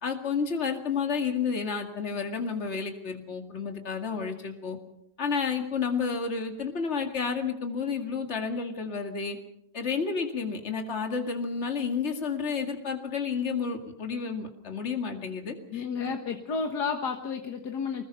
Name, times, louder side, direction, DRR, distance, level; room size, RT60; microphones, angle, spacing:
voice 1, 0.0-4.8 5.2-9.4 9.7-16.1, left 5 dB, 45° left, 4 dB, 2.4 m, -31 dB
voice 2, 15.7-18.1, left 5 dB, 80° left, 4 dB, 1.9 m, -31 dB
25.5 x 20.0 x 5.7 m, 0.77 s
omnidirectional pair, 1.7 m